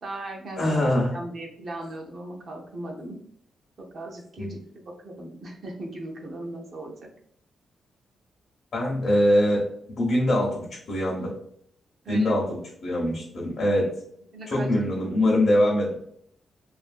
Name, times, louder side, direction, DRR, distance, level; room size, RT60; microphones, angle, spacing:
voice 1, 0.0-0.8 1.1-3.2 3.9-4.6 5.0-6.9 12.0-12.4 14.3-14.7, right 1 dB, 45° right, 0 dB, 0.6 m, -37 dB
voice 2, 0.6-1.1 4.4-4.6 8.7-9.7 10.0-11.3 12.1-13.9 14.5-16.0, left 1 dB, 55° left, -4 dB, 0.7 m, -23 dB
2.6 x 2.4 x 2.4 m, 0.67 s
wide cardioid pair, 155°, 0 cm